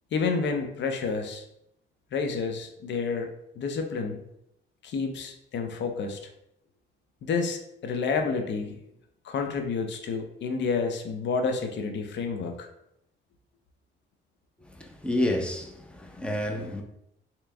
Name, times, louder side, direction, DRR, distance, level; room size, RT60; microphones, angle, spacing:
voice 1, 0.1-1.4 2.1-3.3 3.6-4.2 4.8-6.2 7.2-8.8 9.2-12.7, left 4 dB, 65° left, 0.6 m, -29 dB
voice 2, 14.7-16.8, left 1 dB, 5° left, 0.7 m, -29 dB
3.4 x 3.0 x 3.4 m
cardioid pair, 90°, 20 cm